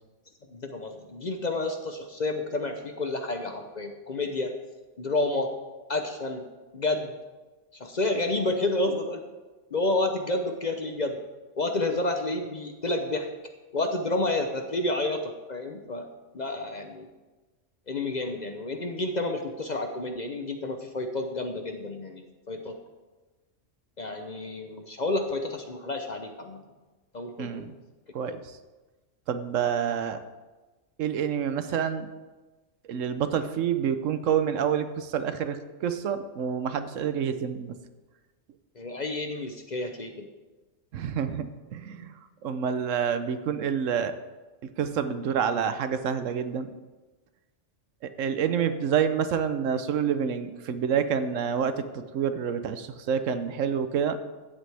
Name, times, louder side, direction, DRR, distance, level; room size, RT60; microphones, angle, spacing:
voice 1, 0.5-4.6 5.0-5.5 5.9-6.5 6.7-7.2 7.7-9.2 9.7-11.2 11.6-13.3 13.7-16.1 16.3-17.1 17.9-22.8 24.0-26.7 27.1-27.6 38.7-40.3 48.6-48.7, left 2 dB, 40° left, 5 dB, 0.7 m, -30 dB
voice 2, 27.4-27.8 28.1-28.6 29.3-30.2 31.0-32.1 32.9-37.8 40.9-42.1 42.4-44.1 44.8-46.7 48.2-54.2, right 7 dB, 75° right, 10 dB, 1.1 m, -28 dB
16.0 x 7.6 x 3.4 m, 1.2 s
omnidirectional pair, 1.3 m